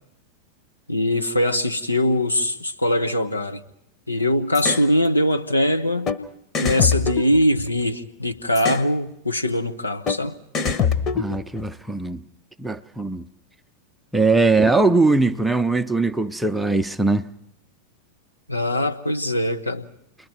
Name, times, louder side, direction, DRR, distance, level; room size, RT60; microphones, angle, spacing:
voice 1, 0.9-3.6 4.1-6.1 6.6-10.4 18.5-19.9, left 1 dB, 85° left, 1.3 m, -22 dB
sound 1, 4.5-4.9 6.1-6.2 6.5-8.0 8.6-8.9 10.1-10.2 10.5-11.6, left 6 dB, 30° left, 1.3 m, -24 dB
voice 2, 11.1-12.2 12.6-13.3 14.1-17.3, right 3 dB, 5° right, 0.7 m, -20 dB
29.5 x 22.0 x 4.5 m
figure-of-eight pair, 90°, 0 cm